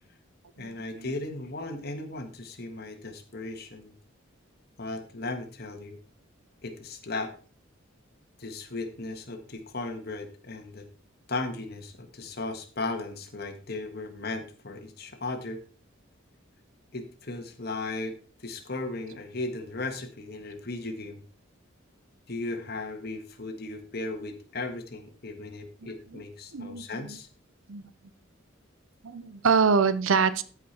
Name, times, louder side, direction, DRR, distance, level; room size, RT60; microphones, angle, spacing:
voice 1, 0.6-3.9 4.8-6.0 6.6-7.3 8.4-10.9 11.3-15.6 16.9-18.1 18.4-21.2 22.3-27.3, left 2 dB, 50° left, 6 dB, 1.5 m, -36 dB
voice 2, 25.8-26.2 26.5-27.2 27.7-27.8 29.0-30.4, right 5 dB, 85° right, 14 dB, 0.7 m, -25 dB
14.0 x 5.1 x 4.3 m, 0.41 s
head